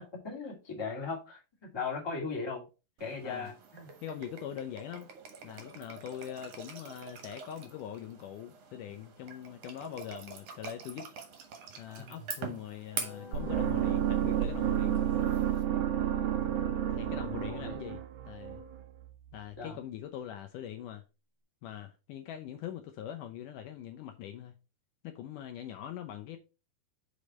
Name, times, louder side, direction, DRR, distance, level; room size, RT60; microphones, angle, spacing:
voice 1, 0.2-1.4 1.7-2.6 3.0-3.9 12.0-12.1 16.3-17.1 17.5-17.8 19.6-19.8, left 4 dB, 10° left, 1.7 m, -38 dB
sound 1, 3.0-15.6, right 5 dB, 60° right, 2.0 m, -46 dB
voice 2, 4.0-5.1 5.4-11.1 11.8-15.0 16.9-18.6 19.3-21.0 21.6-24.5 25.0-26.4, left 10 dB, 75° left, 2.1 m, -42 dB
sound 2, 12.9-17.9, left 4 dB, 30° left, 2.2 m, -50 dB
sound 3, 13.3-19.4, right 11 dB, 75° right, 1.5 m, -31 dB
6.3 x 5.2 x 4.2 m
omnidirectional pair, 4.1 m